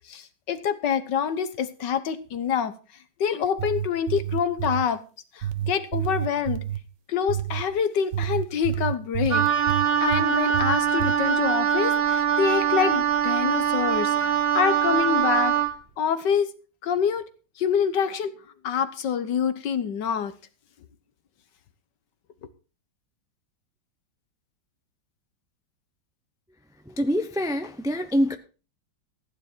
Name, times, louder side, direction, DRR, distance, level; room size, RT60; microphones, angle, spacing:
voice 1, 0.1-2.7 3.2-5.0 5.3-6.6 7.1-15.6 16.0-16.5 16.8-17.3 17.6-18.3 18.6-20.3, left 7 dB, 65° left, 1.7 m, -26 dB
sound 1, 3.4-4.9 5.4-6.8 7.3-7.7 8.1-10.3 10.5-11.2, right 11 dB, 65° right, 1.5 m, -29 dB
Wind instrument woodwind instrument, 9.3-15.7, right 8 dB, 40° right, 1.0 m, -23 dB
voice 2, 26.9-28.4, equal, 5° right, 0.4 m, -25 dB
15.0 x 9.6 x 4.6 m
omnidirectional pair, 2.1 m